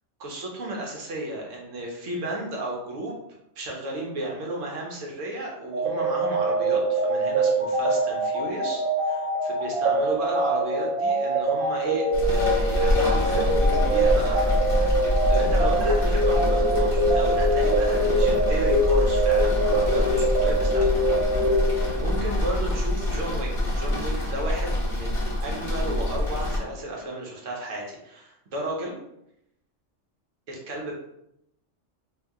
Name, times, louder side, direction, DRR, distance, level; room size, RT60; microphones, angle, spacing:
voice 1, 0.2-3.2 3.6-28.9 30.5-31.0, right 1 dB, 85° right, -1 dB, 1.2 m, -33 dB
sound 1, 5.7-22.3, right 1 dB, 60° right, 1.0 m, -24 dB
sound 2, 12.1-26.6, left 1 dB, 30° left, 0.9 m, -25 dB
2.8 x 2.6 x 3.5 m, 0.81 s
omnidirectional pair, 1.3 m